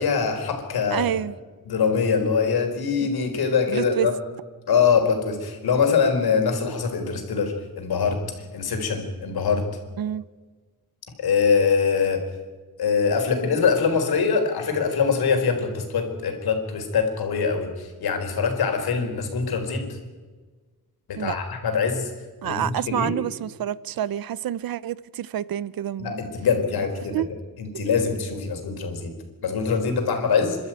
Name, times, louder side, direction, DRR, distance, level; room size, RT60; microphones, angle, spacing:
voice 1, 0.0-1.1 1.7-4.1 4.7-8.2 8.5-9.6 11.2-12.2 12.8-19.9 21.1-22.1 22.4-23.1 26.0-27.1 27.6-29.1 29.4-30.6, left 5 dB, 85° left, 4.5 m, -23 dB
voice 2, 0.9-1.3 3.0-3.1 3.7-4.1 10.0-10.2 21.2-21.4 22.4-26.2 27.1-27.3, right 11 dB, 70° right, 0.8 m, -28 dB
29.5 x 13.0 x 9.1 m
wide cardioid pair, 170°, 36 cm